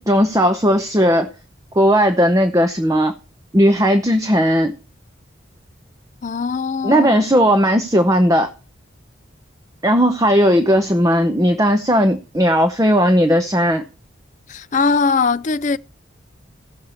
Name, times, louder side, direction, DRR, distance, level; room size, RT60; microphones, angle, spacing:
voice 1, 0.0-1.3 1.7-3.1 3.5-4.7 6.8-8.5 9.8-13.8, equal, 15° right, 0.7 m, -16 dB
voice 2, 6.2-7.2 14.5-15.8, left 4 dB, 40° left, 0.4 m, -20 dB
16.0 x 6.6 x 4.3 m
head